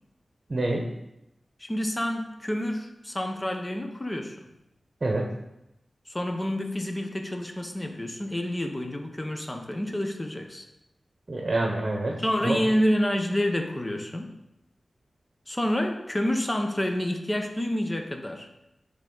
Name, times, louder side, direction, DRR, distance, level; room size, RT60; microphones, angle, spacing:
voice 1, 0.5-0.9 5.0-5.3 11.3-12.6, right 2 dB, 40° right, 0 dB, 1.0 m, -27 dB
voice 2, 1.6-4.5 6.1-10.6 12.2-14.4 15.5-18.5, equal, 20° left, 4 dB, 0.9 m, -28 dB
9.5 x 3.7 x 3.9 m, 0.88 s
wide cardioid pair, 80°, 0 cm